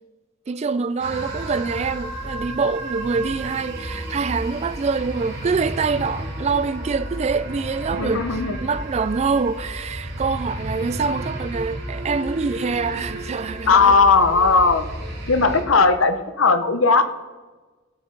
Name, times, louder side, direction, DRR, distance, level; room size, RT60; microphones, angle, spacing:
voice 1, 0.5-8.2 8.6-14.0, right 4 dB, 30° right, 0.3 m, -25 dB
sound 1, 1.0-15.6, right 1 dB, 55° right, 2.9 m, -32 dB
voice 2, 8.0-8.6 13.7-14.9 15.3-17.0, left 4 dB, 75° left, 0.8 m, -17 dB
17.5 x 8.3 x 3.9 m
head